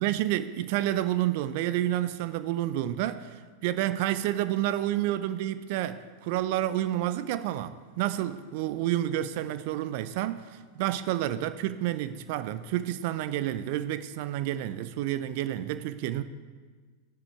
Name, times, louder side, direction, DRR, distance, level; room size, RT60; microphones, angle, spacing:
voice 1, 0.0-16.2, right 13 dB, 50° right, 0.4 m, -29 dB
13.0 x 10.5 x 3.4 m
figure-of-eight pair, 90°, 0 cm